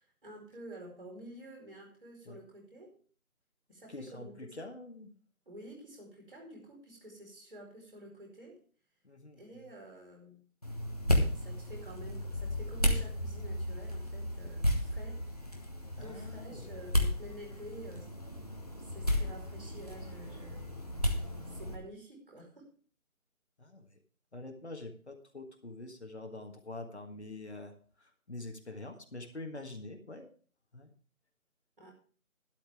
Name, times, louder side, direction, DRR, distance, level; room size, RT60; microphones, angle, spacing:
voice 1, 0.0-2.9 3.7-4.5 5.5-8.6 9.4-10.4 11.3-15.2 16.0-18.1 18.8-20.7 21.5-22.7 31.8-31.9, right 1 dB, 40° right, -1 dB, 4.7 m, -50 dB
voice 2, 3.9-5.1 9.0-9.4 16.0-16.8 23.6-24.0 24.3-27.7 28.0-30.3 30.7-30.9, left 2 dB, 50° left, 4 dB, 1.7 m, -45 dB
sound 1, 10.6-21.7, equal, 25° left, 1.2 m, -33 dB
12.0 x 11.5 x 3.5 m, 0.42 s
figure-of-eight pair, 175°, 43 cm